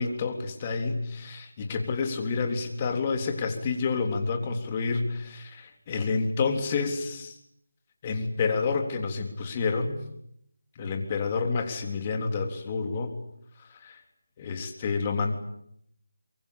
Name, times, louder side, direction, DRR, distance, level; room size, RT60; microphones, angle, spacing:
voice 1, 0.0-7.3 8.0-10.0 10.8-13.1 13.8-14.0 14.4-15.3, left 4 dB, 25° left, 5 dB, 3.5 m, -29 dB
24.0 x 23.0 x 8.7 m, 0.73 s
figure-of-eight pair, 165°, 0 cm